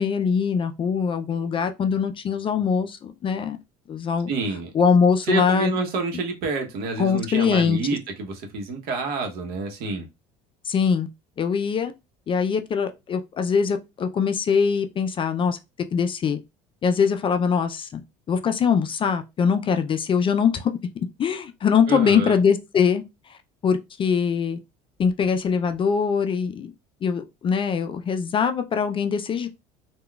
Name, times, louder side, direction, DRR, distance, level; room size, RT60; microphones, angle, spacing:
voice 1, 0.0-3.6 3.9-4.3 4.7-5.7 7.0-7.8 10.6-11.1 11.4-11.9 12.3-15.6 15.9-16.4 16.8-18.0 18.3-20.7 21.2-23.0 23.3-23.4 23.6-24.6 25.0-26.7 27.0-29.5, left 6 dB, 30° left, 0.3 m, -22 dB
voice 2, 4.3-4.7 5.2-10.1 21.9-22.4, right 3 dB, 60° right, 0.9 m, -28 dB
3.6 x 2.2 x 2.2 m
supercardioid pair, 100°, 18 cm